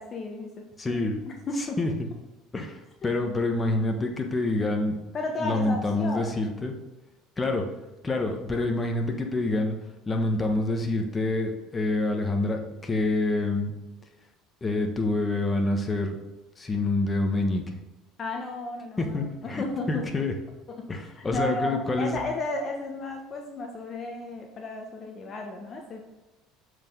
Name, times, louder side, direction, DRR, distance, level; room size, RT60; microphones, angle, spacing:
voice 1, 0.0-1.8 3.0-3.1 5.1-6.5 18.2-20.1 20.7-26.0, left 2 dB, 40° left, 2 dB, 1.1 m, -34 dB
voice 2, 0.8-1.2 1.6-1.9 2.5-5.0 5.4-6.7 7.4-7.7 8.0-9.8 10.1-13.7 14.6-16.2 16.6-17.8 19.0-20.3 20.9-22.2, left 2 dB, 25° left, 3 dB, 1.3 m, -27 dB
7.4 x 4.9 x 3.8 m, 1.1 s
hypercardioid pair, 75°, 0 cm